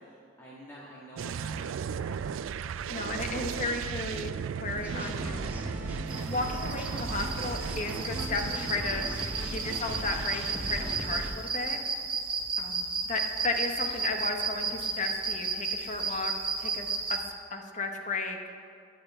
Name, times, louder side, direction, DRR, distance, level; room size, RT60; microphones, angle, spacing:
voice 1, 0.0-2.3, equal, 15° left, -6 dB, 1.5 m, -49 dB
sound 1, 1.2-11.3, right 7 dB, 85° right, 0.3 m, -37 dB
voice 2, 2.9-5.7 6.3-9.1 9.5-11.8 12.6-16.3 16.6-17.2 17.5-18.4, left 3 dB, 40° left, 4 dB, 0.9 m, -34 dB
sound 2, 4.8-11.3, equal, 10° right, 1.0 m, -38 dB
sound 3, 6.1-17.2, right 4 dB, 25° right, 1.2 m, -33 dB
10.5 x 6.5 x 8.9 m, 2.5 s
head